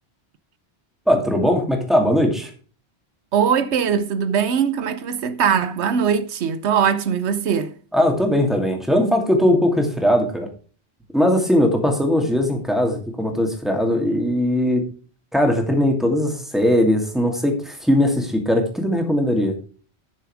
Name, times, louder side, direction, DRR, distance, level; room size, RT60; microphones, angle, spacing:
voice 1, 1.1-2.5 7.9-10.5 11.1-14.8 15.3-19.5, left 1 dB, ahead, 2.4 m, -19 dB
voice 2, 3.3-7.7, right 7 dB, 85° right, 1.1 m, -21 dB
11.0 x 6.9 x 4.8 m
omnidirectional pair, 1.1 m